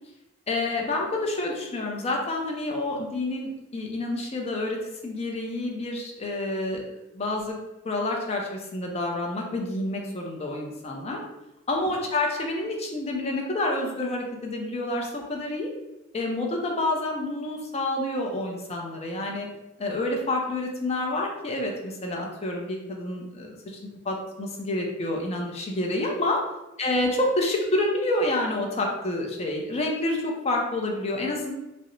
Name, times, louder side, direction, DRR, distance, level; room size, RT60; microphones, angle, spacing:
voice 1, 0.5-4.8 5.0-6.8 7.1-7.6 7.8-11.2 11.7-15.7 16.1-19.5 19.8-23.8 24.0-26.4 26.8-31.5, left 2 dB, 30° left, 1 dB, 0.4 m, -28 dB
2.4 x 2.0 x 2.9 m, 0.97 s
head